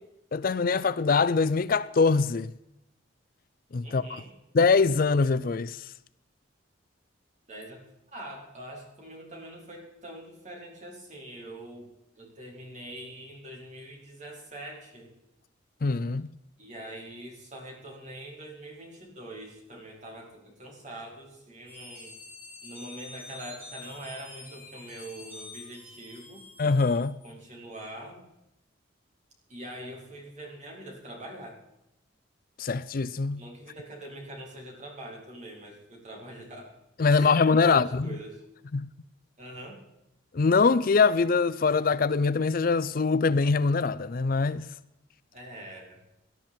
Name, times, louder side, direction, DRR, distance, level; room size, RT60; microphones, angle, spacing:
voice 1, 0.3-2.5 3.7-4.2 4.5-5.8 15.8-16.3 26.6-27.2 32.6-33.4 37.0-38.1 38.7-38.9 40.3-44.7, left 4 dB, 50° left, 0.5 m, -23 dB
voice 2, 3.8-4.3 7.5-7.8 8.1-11.9 12.2-15.1 16.6-22.1 22.6-26.4 27.2-28.2 29.5-31.6 33.4-36.7 37.0-38.4 39.4-39.8 45.3-46.0, right 1 dB, 40° right, 4.7 m, -43 dB
sound 1, 21.7-27.4, left 2 dB, 10° right, 6.8 m, -47 dB
19.0 x 12.0 x 4.4 m
head